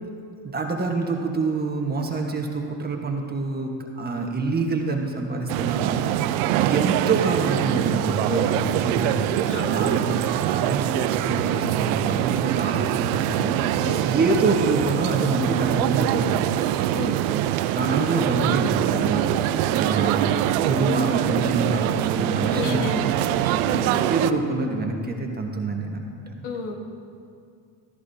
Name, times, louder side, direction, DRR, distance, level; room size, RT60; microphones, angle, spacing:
voice 1, 0.4-6.0 6.6-9.2 9.7-16.5 17.7-22.9 23.2-26.5, right 3 dB, 20° right, 2 dB, 1.3 m, -26 dB
sound 1, 5.5-24.3, right 12 dB, 85° right, 0.6 m, -24 dB
voice 2, 9.5-9.8 13.8-14.1 16.9-17.2 22.5-23.4 23.6-24.0 26.4-26.7, left 3 dB, 70° left, 2 dB, 1.7 m, -31 dB
15.5 x 13.0 x 2.8 m, 2.4 s
supercardioid pair, 110°, 42 cm